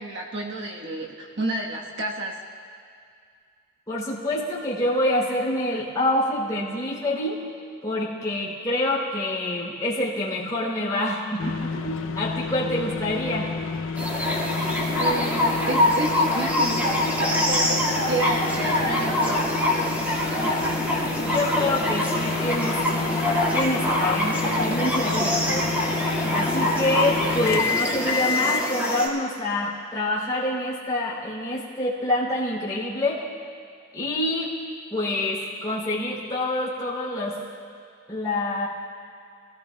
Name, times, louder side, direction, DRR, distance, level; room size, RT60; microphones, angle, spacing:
voice 1, 0.0-2.4 14.9-16.9 17.5-19.5, right 2 dB, 60° right, -1 dB, 1.2 m, -30 dB
voice 2, 3.9-7.4 7.8-13.5 21.2-22.8 23.5-25.7 26.3-33.2 33.9-34.6 34.9-37.4 38.1-38.7, left 1 dB, 20° left, -8 dB, 2.8 m, -26 dB
sound 1, 11.4-28.7, left 5 dB, 70° left, 0.5 m, -30 dB
sound 2, 14.0-29.1, left 1 dB, 10° right, 1.8 m, -25 dB
25.0 x 16.5 x 2.2 m, 2.2 s
head